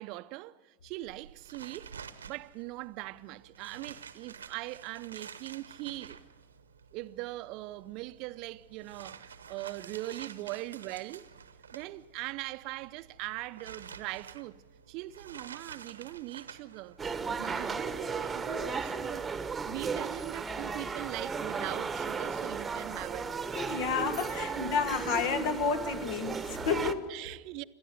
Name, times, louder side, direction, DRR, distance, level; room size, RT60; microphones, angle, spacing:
voice 1, 0.0-1.9 2.2-6.2 6.9-11.3 11.7-14.6 14.9-17.0 17.3-23.3 24.6-24.7 26.8-27.6, right 18 dB, 50° right, 0.6 m, -41 dB
sound 1, 1.0-18.3, right 7 dB, 80° right, 1.0 m, -50 dB
sound 2, 17.0-26.9, right 5 dB, 15° right, 1.1 m, -35 dB
voice 2, 23.5-27.1, left 5 dB, 55° left, 1.5 m, -31 dB
28.0 x 13.0 x 8.0 m
figure-of-eight pair, 90°, 0 cm